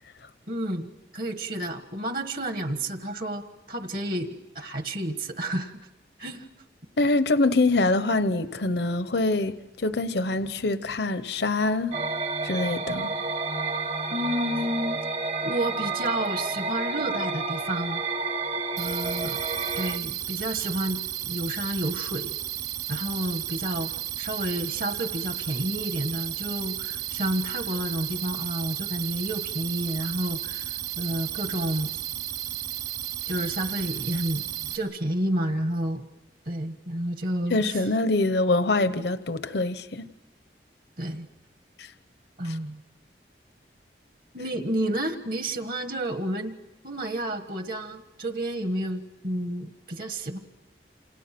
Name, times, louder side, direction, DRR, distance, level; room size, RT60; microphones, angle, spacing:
voice 1, 0.5-5.8 6.2-6.4 14.1-15.0 15.4-18.0 18.8-19.4 19.7-21.0 21.3-22.4 22.9-31.9 33.3-36.1 36.5-37.8 41.0-41.3 42.4-42.8 44.3-46.6 46.8-50.4, right 1 dB, 50° right, 1.5 m, -30 dB
voice 2, 7.0-11.9 12.4-13.1 37.5-40.1 41.8-41.9 42.5-42.6, left 2 dB, 70° left, 0.8 m, -24 dB
sound 1, 11.9-20.0, right 3 dB, 35° right, 1.0 m, -30 dB
sound 2, 18.8-34.8, right 13 dB, 70° right, 5.2 m, -33 dB
28.5 x 28.0 x 6.0 m
head